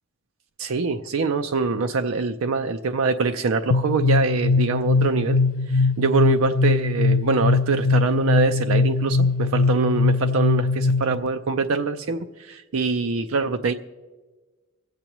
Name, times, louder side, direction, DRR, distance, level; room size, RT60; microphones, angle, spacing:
voice 1, 0.6-5.4 5.7-13.7, right 4 dB, 85° right, 6 dB, 0.5 m, -24 dB
sound 1, 3.7-11.3, left 3 dB, 70° left, 0.4 m, -21 dB
25.0 x 8.3 x 3.0 m, 1.3 s
head